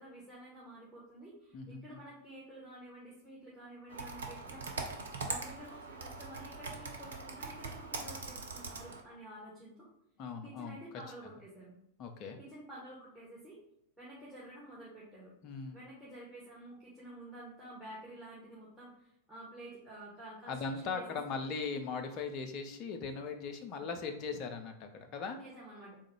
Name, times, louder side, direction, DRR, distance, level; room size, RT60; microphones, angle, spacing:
voice 1, 0.0-9.8 10.4-11.7 12.4-13.6 14.0-15.3 15.7-21.5 25.4-25.9, right 1 dB, 5° right, -8 dB, 1.5 m, -50 dB
voice 2, 1.5-2.0 10.2-10.8 12.0-12.4 15.4-15.8 20.5-25.4, left 5 dB, 40° left, 5 dB, 0.6 m, -39 dB
Computer keyboard, 3.9-9.0, right 4 dB, 65° right, 0.6 m, -42 dB
3.7 x 2.3 x 4.6 m, 0.77 s
figure-of-eight pair, 90°, 0 cm